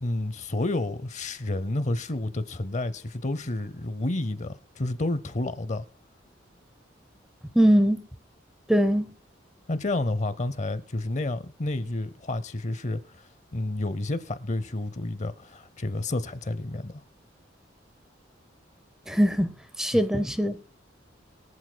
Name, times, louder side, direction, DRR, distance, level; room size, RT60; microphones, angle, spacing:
voice 1, 0.0-5.8 9.7-17.0, left 2 dB, 40° left, 0.6 m, -30 dB
voice 2, 7.5-8.0 8.7-9.1 19.1-20.7, equal, 5° right, 0.7 m, -22 dB
23.5 x 8.6 x 2.2 m
head